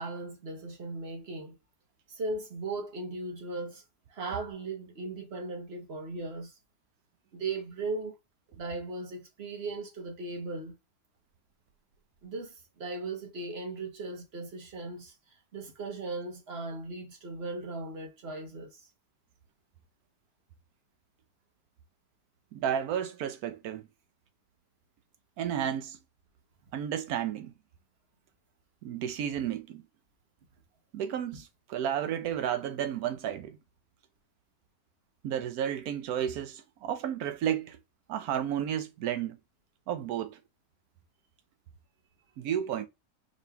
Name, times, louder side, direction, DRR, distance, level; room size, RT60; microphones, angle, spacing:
voice 1, 0.0-1.6 2.1-3.8 4.1-6.5 7.3-8.1 8.5-10.8 12.2-15.1 15.5-18.9, right 3 dB, 45° right, 1.1 m, -37 dB
voice 2, 22.5-23.9 25.4-26.0 26.7-27.5 28.8-29.8 30.9-33.6 35.2-37.8 38.1-39.4 39.9-40.4 42.4-42.8, right 9 dB, 75° right, 1.1 m, -32 dB
5.0 x 3.0 x 2.2 m
omnidirectional pair, 1.6 m